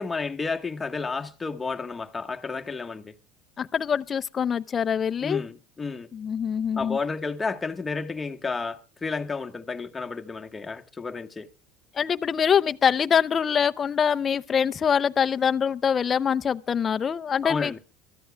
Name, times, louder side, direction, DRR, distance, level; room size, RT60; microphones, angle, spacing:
voice 1, 0.0-3.1 5.2-6.1 6.8-11.5 17.4-17.8, left 4 dB, 20° left, 1.3 m, -31 dB
voice 2, 3.6-5.4 6.1-7.0 11.9-17.8, left 7 dB, 35° left, 0.6 m, -24 dB
25.0 x 14.0 x 2.3 m
supercardioid pair, 95°, 0 cm